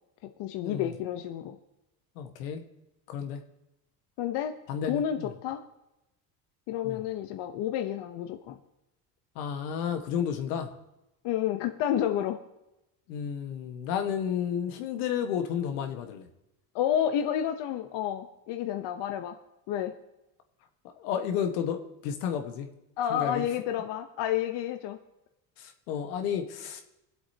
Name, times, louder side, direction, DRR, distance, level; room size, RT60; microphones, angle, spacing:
voice 1, 0.4-1.6 4.2-4.6 4.8-5.6 6.7-8.6 11.2-12.4 16.7-19.4 19.7-19.9 23.0-25.0, left 10 dB, 65° left, 7 dB, 0.9 m, -30 dB
voice 2, 2.2-2.6 3.1-3.4 4.7-5.3 6.8-7.0 9.3-10.7 13.1-16.2 21.0-22.7 23.1-23.4 25.6-26.8, left 8 dB, 85° left, 6 dB, 1.5 m, -32 dB
21.5 x 8.0 x 2.8 m, 0.92 s
supercardioid pair, 95°, 46 cm